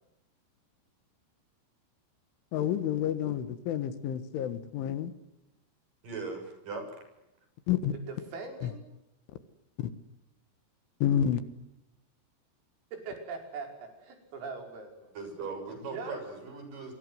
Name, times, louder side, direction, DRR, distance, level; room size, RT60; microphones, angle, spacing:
voice 1, 2.5-5.1 7.7-7.9 9.8-9.9 11.0-11.4, left 10 dB, 75° left, 3.8 m, -29 dB
voice 2, 6.0-6.8 15.1-16.9, right 4 dB, 40° right, 8.5 m, -39 dB
voice 3, 8.1-8.8 12.9-15.1 15.7-16.2, right 4 dB, 80° right, 7.9 m, -41 dB
28.5 x 25.0 x 7.9 m
omnidirectional pair, 5.9 m